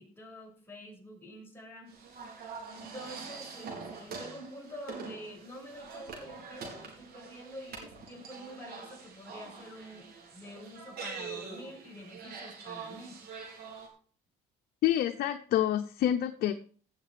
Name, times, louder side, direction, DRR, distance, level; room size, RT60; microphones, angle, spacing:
voice 1, 0.0-2.3 2.7-13.2, equal, 15° left, -2 dB, 6.6 m, -47 dB
sound 1, 1.9-13.9, right 5 dB, 65° right, 4.6 m, -45 dB
voice 2, 14.8-16.5, left 11 dB, 65° left, 7 dB, 0.8 m, -27 dB
17.0 x 6.8 x 5.0 m, 0.43 s
cardioid pair, 110°, 17 cm